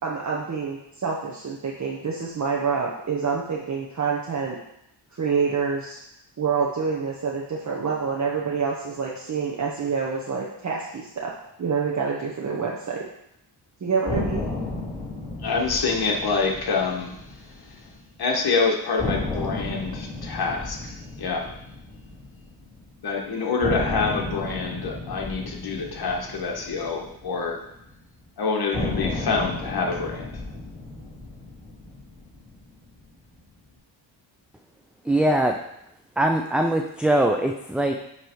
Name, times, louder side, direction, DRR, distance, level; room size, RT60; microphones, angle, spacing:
voice 1, 0.0-4.6 5.1-6.0 6.4-11.3 11.6-13.0 13.8-14.5, right 5 dB, 40° right, -3 dB, 1.1 m, -27 dB
sound 1, 14.1-18.1 18.4-18.5 19.0-23.1 23.6-28.0 28.7-33.1, left 2 dB, 15° left, 3.0 m, -33 dB
voice 2, 15.4-17.8 18.2-20.9 21.2-21.5 23.0-27.6 28.4-30.3, left 4 dB, 55° left, 0 dB, 1.5 m, -26 dB
voice 3, 35.0-35.6 36.2-37.9, right 1 dB, ahead, 3 dB, 0.3 m, -22 dB
9.7 x 3.3 x 4.6 m, 0.79 s
cardioid pair, 95°, 44 cm